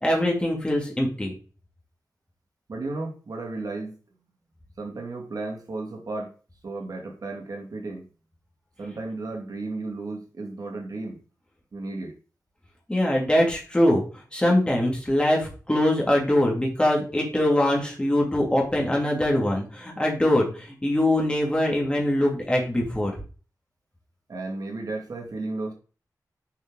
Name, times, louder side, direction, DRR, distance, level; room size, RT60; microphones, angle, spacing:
voice 1, 0.0-1.3 12.9-14.0 14.3-23.1, left 1 dB, 15° left, 3.2 m, -23 dB
voice 2, 2.7-3.9 4.8-6.3 6.6-8.1 8.8-11.2 11.7-12.1 24.3-25.7, right 2 dB, 70° right, 2.3 m, -34 dB
7.3 x 6.4 x 4.0 m
wide cardioid pair, 110°, 7 cm